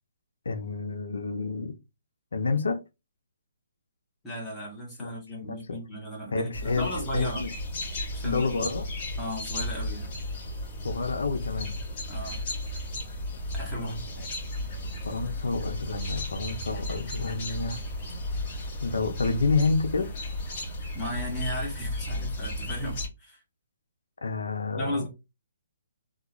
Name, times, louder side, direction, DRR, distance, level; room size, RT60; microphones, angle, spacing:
voice 1, 0.4-1.7 2.3-2.8 5.0-5.1 5.4-5.6 6.3-7.5 8.2-8.9 10.8-11.7 13.8-14.2 15.0-17.8 18.8-20.1 24.2-25.1, left 4 dB, 85° left, 0.6 m, -29 dB
voice 2, 4.2-7.4 8.1-8.6 9.2-10.1 12.1-12.4 13.5-14.2 20.9-23.4 24.7-25.1, equal, 5° left, 1.2 m, -35 dB
sound 1, 6.5-23.1, left 1 dB, 35° left, 1.7 m, -34 dB
3.6 x 2.3 x 3.0 m
hypercardioid pair, 165°, 0 cm